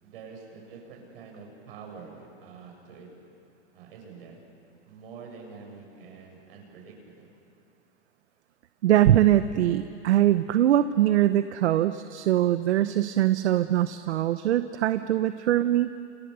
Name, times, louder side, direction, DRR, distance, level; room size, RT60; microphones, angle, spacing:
voice 1, 0.0-3.1 3.7-4.4 4.9-7.3, right 5 dB, 55° right, 1 dB, 7.4 m, -46 dB
voice 2, 8.8-15.9, right 12 dB, 70° right, 11 dB, 1.0 m, -22 dB
29.5 x 29.0 x 6.9 m, 2.5 s
supercardioid pair, 165°, 34 cm